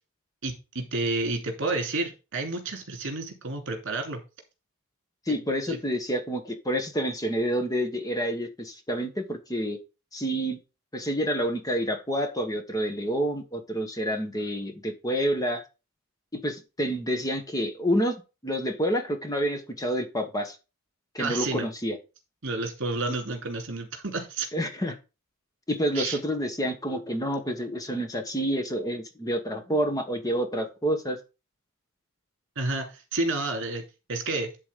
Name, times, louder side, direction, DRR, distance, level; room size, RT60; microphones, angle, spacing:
voice 1, 0.4-4.2 5.7-5.8 21.2-21.7 22.4-24.5 25.9-26.2 32.6-33.8 34.1-34.5, right 2 dB, 60° right, 3 dB, 2.8 m, -30 dB
voice 2, 5.3-9.8 10.1-10.6 10.9-15.6 16.3-20.6 21.1-22.0 24.5-25.0 25.7-31.2, equal, 15° left, 5 dB, 1.3 m, -28 dB
11.0 x 4.0 x 5.1 m, 0.29 s
head